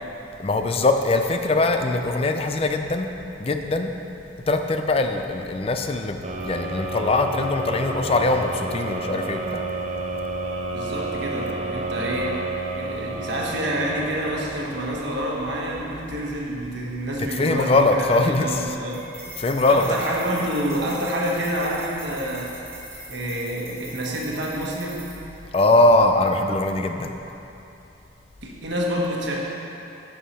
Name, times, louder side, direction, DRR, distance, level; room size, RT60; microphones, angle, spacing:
voice 1, 0.4-3.1 3.4-3.9 4.5-9.6 17.2-18.6 19.4-20.0 25.5-27.1, left 2 dB, 30° left, 6 dB, 0.4 m, -21 dB
sound 1, 6.2-15.1, right 2 dB, 35° right, 0.7 m, -31 dB
voice 2, 10.7-12.4 12.7-19.1 19.7-22.6 23.1-25.0 28.4-29.4, right 1 dB, 70° right, -3 dB, 1.3 m, -28 dB
sound 2, 18.9-25.4, right 2 dB, 15° right, 1.9 m, -41 dB
11.0 x 5.7 x 4.2 m, 2.9 s
head